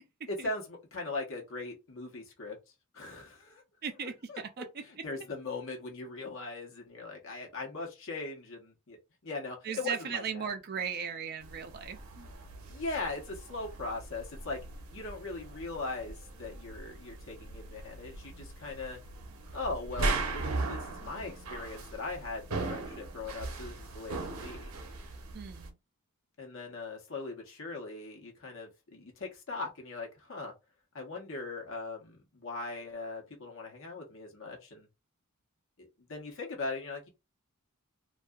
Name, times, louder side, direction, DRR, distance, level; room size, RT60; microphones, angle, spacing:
voice 1, 0.3-2.6 2.9-3.6 4.0-4.4 4.8-10.5 12.7-14.6 14.9-19.0 19.5-24.7 26.4-30.5 30.9-34.9 35.8-37.1, left 3 dB, 65° left, 0.9 m, -40 dB
voice 2, 3.8-4.6 9.6-12.3 25.3-25.8, right 7 dB, 50° right, 0.4 m, -37 dB
sound 1, 11.4-25.7, right 3 dB, 90° right, 0.6 m, -39 dB
2.7 x 2.3 x 2.3 m
head